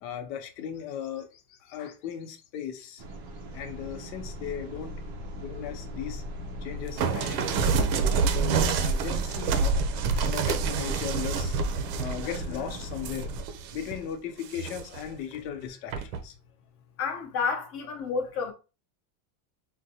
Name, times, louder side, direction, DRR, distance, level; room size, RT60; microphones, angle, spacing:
voice 1, 0.0-3.0 3.5-5.0 5.4-6.2 6.6-7.6 8.2-9.8 10.1-11.5 12.0-13.3 13.7-16.3, left 8 dB, 90° left, 0.9 m, -37 dB
sound 1, 3.0-13.4, equal, 25° right, 0.4 m, -40 dB
sound 2, 7.0-14.0 14.4-15.1 15.9-16.2, right 5 dB, 90° right, 0.7 m, -27 dB
voice 2, 17.0-18.5, left 5 dB, 30° left, 0.5 m, -30 dB
3.8 x 2.2 x 2.8 m
cardioid pair, 170°, 49 cm